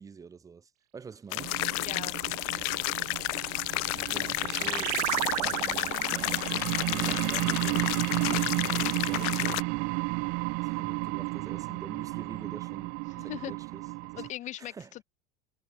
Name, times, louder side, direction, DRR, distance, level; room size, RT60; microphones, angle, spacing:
voice 1, 0.0-1.7 4.0-5.0 5.3-8.0 8.4-9.8 10.6-12.9 13.2-13.9 14.1-14.3 14.6-14.9, right 5 dB, 15° right, 5.5 m, -46 dB
sound 1, 1.3-9.6, left 40 dB or more, 55° left, 2.5 m, -31 dB
sound 2, 1.4-14.3, right 29 dB, 45° right, 0.5 m, -33 dB
voice 2, 1.8-3.0 4.1-4.3 8.5-8.7 13.2-13.5 14.2-15.0, left 14 dB, 35° left, 4.5 m, -41 dB
sound 3, 3.6-8.7, right 23 dB, 70° right, 1.3 m, -35 dB
supercardioid pair, 160°, 21 cm